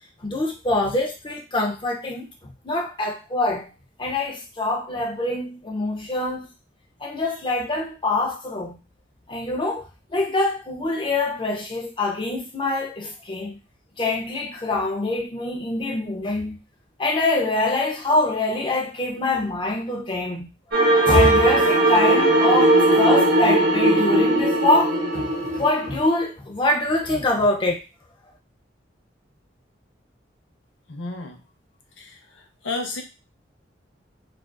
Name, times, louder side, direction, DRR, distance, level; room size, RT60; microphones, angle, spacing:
voice 1, 0.2-3.7 4.0-6.5 7.0-8.8 9.3-9.9 10.1-13.6 14.0-16.6 17.0-20.5 20.9-25.3 25.5-27.8, left 2 dB, 25° left, 0 dB, 0.5 m, -24 dB
sound 1, 20.7-26.1, right 2 dB, 55° right, 0.6 m, -18 dB
voice 2, 30.9-31.4 32.0-33.0, left 3 dB, 85° left, 3 dB, 0.6 m, -32 dB
2.5 x 2.3 x 2.2 m, 0.29 s
head